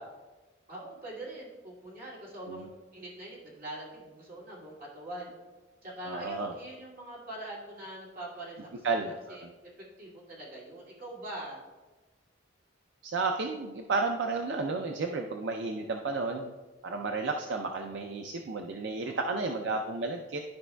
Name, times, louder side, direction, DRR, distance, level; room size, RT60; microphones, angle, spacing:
voice 1, 0.7-5.3 5.8-9.0 9.3-9.5 10.0-11.6 19.0-19.5, right 1 dB, 45° right, -6 dB, 2.3 m, -43 dB
voice 2, 6.0-6.5 8.8-9.4 13.0-16.5 16.8-20.4, right 3 dB, 65° right, 4 dB, 0.5 m, -32 dB
12.0 x 5.3 x 2.2 m, 1.2 s
head